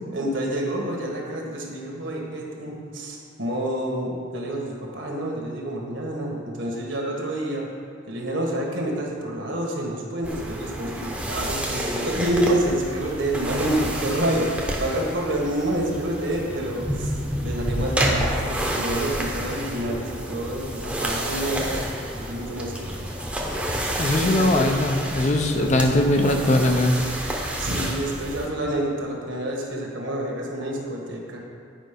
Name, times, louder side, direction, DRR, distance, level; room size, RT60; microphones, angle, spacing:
voice 1, 0.1-7.7 8.1-21.8 22.1-23.1 24.1-24.6 25.5-25.7 27.6-31.4, right 1 dB, 65° right, -1 dB, 1.5 m, -28 dB
sound 1, 10.2-28.5, right 1 dB, 5° right, 0.8 m, -29 dB
voice 2, 24.0-27.0, left 1 dB, 35° left, 4 dB, 0.6 m, -20 dB
9.0 x 5.2 x 5.2 m, 2.3 s
head